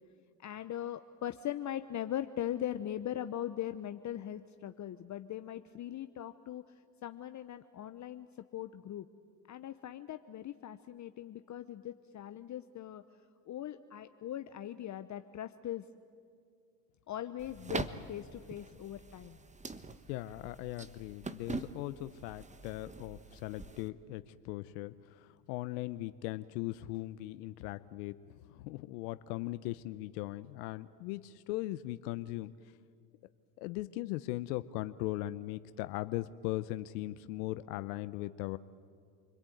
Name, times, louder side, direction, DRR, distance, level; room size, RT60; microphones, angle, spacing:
voice 1, 0.4-6.7 7.0-8.3 8.5-9.1 9.5-13.0 13.5-15.8 17.1-19.4, left 11 dB, 35° left, 10 dB, 0.9 m, -40 dB
sound 1, 17.4-23.9, right 3 dB, 15° right, 1.2 m, -44 dB
voice 2, 20.1-28.2 28.5-32.5 33.6-38.6, left 17 dB, 75° left, 13 dB, 0.9 m, -39 dB
28.5 x 21.5 x 9.3 m, 2.3 s
supercardioid pair, 90°, 49 cm